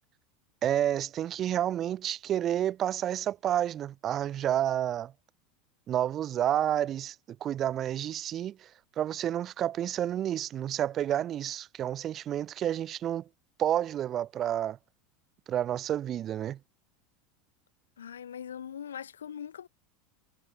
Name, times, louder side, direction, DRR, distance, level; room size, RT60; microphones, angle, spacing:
voice 1, 0.6-5.1 5.9-7.1 7.4-8.5 9.0-13.2 13.6-14.8 15.5-16.6, right 11 dB, 35° right, 0.9 m, -30 dB
voice 2, 18.0-19.7, left 8 dB, 75° left, 2.2 m, -41 dB
figure-of-eight pair, 80°, 0 cm